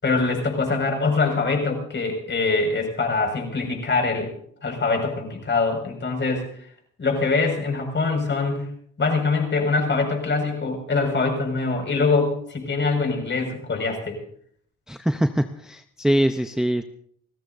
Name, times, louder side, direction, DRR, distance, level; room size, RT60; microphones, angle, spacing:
voice 1, 0.0-4.3 4.6-6.5 7.0-8.7 9.0-14.2, left 3 dB, 40° left, 3 dB, 5.6 m, -23 dB
voice 2, 14.9-16.8, right 1 dB, ahead, 7 dB, 0.6 m, -23 dB
29.5 x 14.0 x 2.6 m, 0.65 s
cardioid pair, 90°, 30 cm